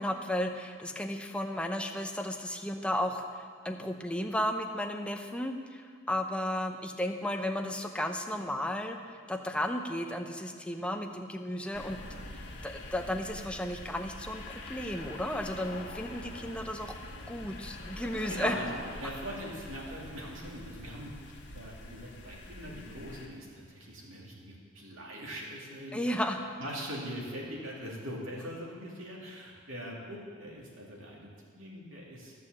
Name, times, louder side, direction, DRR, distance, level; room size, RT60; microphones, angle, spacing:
voice 1, 0.0-3.3 3.6-12.0 12.3-16.9 17.3-18.6 25.9-26.4, left 1 dB, 5° left, 4 dB, 0.7 m, -34 dB
sound 1, 11.7-23.3, left 2 dB, 55° left, 1.6 m, -45 dB
voice 2, 18.3-31.3 31.5-32.3, equal, 65° right, -3 dB, 2.6 m, -42 dB
13.5 x 6.7 x 7.4 m, 2.1 s
head